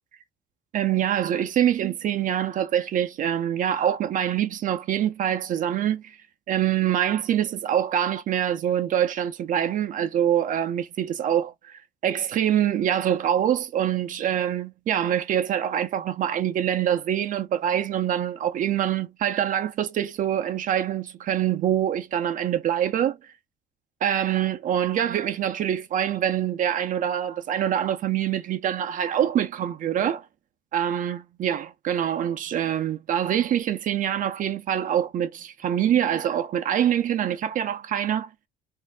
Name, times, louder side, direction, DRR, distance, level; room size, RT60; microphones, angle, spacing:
voice 1, 0.7-6.2 6.5-23.2 24.0-30.3 30.7-38.3, right 10 dB, 50° right, 0.5 m, -25 dB
2.5 x 2.0 x 3.3 m
cardioid pair, 110°, 17 cm